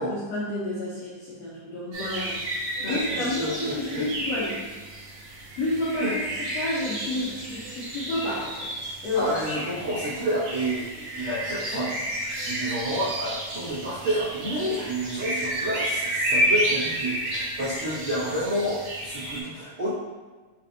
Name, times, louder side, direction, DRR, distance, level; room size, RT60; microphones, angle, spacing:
voice 1, 0.1-2.4 2.9-4.6 5.6-6.1 6.5-8.5 9.0-9.3 14.8-14.9, left 2 dB, 75° left, -8 dB, 1.6 m, -30 dB
sound 1, 1.9-19.4, right 1 dB, 70° right, 1.3 m, -31 dB
voice 2, 2.8-4.1 6.0-6.2 9.1-12.0 12.4-19.9, right 1 dB, 40° right, -13 dB, 0.9 m, -29 dB
5.7 x 3.3 x 2.7 m, 1.3 s
omnidirectional pair, 3.8 m